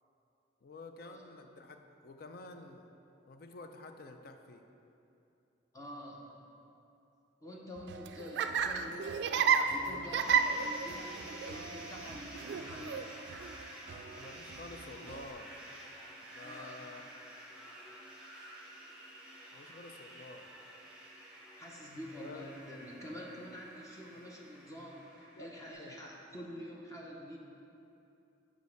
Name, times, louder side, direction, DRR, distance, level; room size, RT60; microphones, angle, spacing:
voice 1, 0.6-2.9 3.3-4.6 14.1-15.6 16.3-17.1 19.5-20.5 22.1-22.5 24.1-24.2 25.3-26.0 26.3-26.4, left 2 dB, 55° left, 6 dB, 0.4 m, -50 dB
voice 2, 5.7-6.4 7.4-13.2 16.4-16.7 21.5-27.4, equal, 15° left, -3 dB, 0.8 m, -47 dB
Laughter, 7.8-15.3, right 6 dB, 60° right, 0.3 m, -33 dB
sound 1, 10.2-25.7, right 1 dB, 5° right, 1.1 m, -50 dB
5.3 x 5.1 x 6.4 m, 2.7 s
head